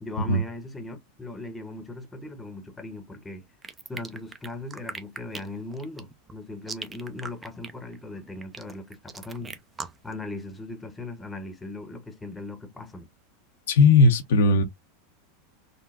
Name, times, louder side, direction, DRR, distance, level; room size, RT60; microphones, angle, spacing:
voice 1, 0.0-3.4 3.9-9.6 10.0-13.1, left 2 dB, 10° left, 0.8 m, -38 dB
sound 1, 3.6-10.1, right 4 dB, 20° right, 0.5 m, -39 dB
voice 2, 13.7-14.6, left 3 dB, 85° left, 0.7 m, -17 dB
3.8 x 2.1 x 2.4 m
hypercardioid pair, 115°, 0 cm